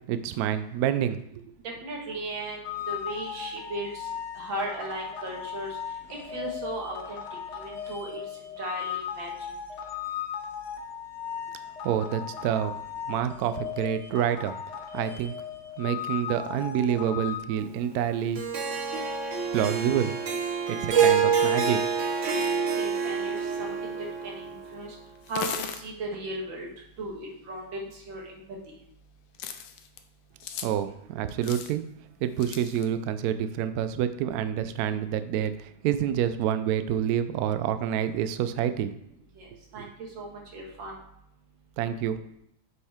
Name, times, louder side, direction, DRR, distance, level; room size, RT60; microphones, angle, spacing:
voice 1, 0.1-1.4 11.8-12.7 13.1-14.5 14.9-15.3 15.8-18.4 19.5-20.1 20.7-21.8 30.6-31.8 32.2-38.9 39.8-39.9 41.8-42.2, right 9 dB, 90° right, 11 dB, 0.8 m, -27 dB
voice 2, 1.6-7.2 7.5-8.2 8.6-9.5 22.2-24.0 24.2-25.0 25.3-26.7 27.0-28.4 28.7-28.8 39.4-41.0, right 2 dB, 70° right, -1 dB, 2.3 m, -37 dB
sound 1, 2.6-17.4, left 9 dB, 55° left, 0.8 m, -37 dB
Harp, 18.4-24.7, right 6 dB, 50° right, 0.9 m, -27 dB
sound 2, 22.4-22.6 24.2-24.3 25.2-25.8 28.0-28.1 29.3-30.0 30.4-30.7 31.3-31.7 32.4-32.9, left 8 dB, 80° left, 1.4 m, -37 dB
7.8 x 5.4 x 3.5 m, 0.77 s
omnidirectional pair, 2.2 m